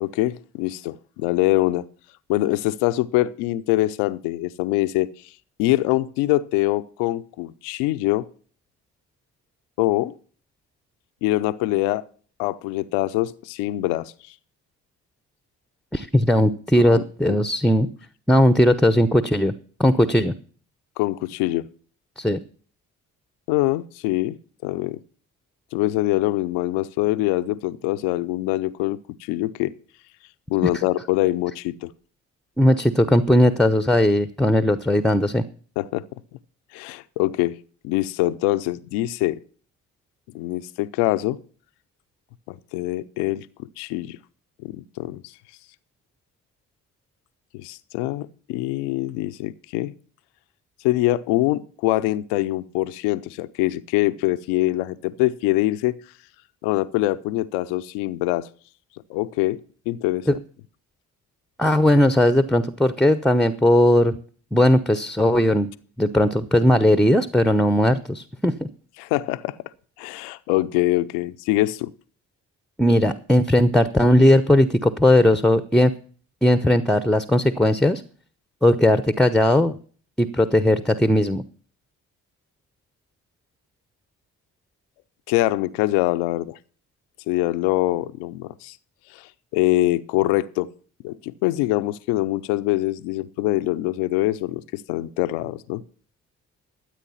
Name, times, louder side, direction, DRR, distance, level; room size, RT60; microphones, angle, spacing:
voice 1, 0.0-1.9 2.3-5.1 5.6-8.3 9.8-10.1 11.2-12.0 12.4-14.1 16.7-17.4 21.0-21.7 23.5-24.4 24.6-25.0 25.7-29.7 30.5-31.9 35.8-36.0 36.7-37.6 37.8-39.4 40.3-41.4 42.5-43.5 43.8-44.2 44.6-45.3 47.5-49.9 50.8-55.9 56.6-58.5 59.1-59.6 59.9-60.3 69.0-69.6 70.0-71.9 85.3-86.6 87.3-88.8 89.1-90.7 91.0-95.8, left 17 dB, 80° left, 0.7 m, -24 dB
voice 2, 15.9-17.9 18.3-19.5 19.8-20.3 22.2-22.4 30.7-30.9 32.6-35.4 60.3-60.4 61.6-64.2 64.5-65.7 66.0-68.7 72.8-75.9 76.4-78.0 78.6-79.8 80.2-81.4, left 1 dB, ahead, 0.8 m, -18 dB
13.5 x 8.2 x 5.6 m
hypercardioid pair, 45°, 41 cm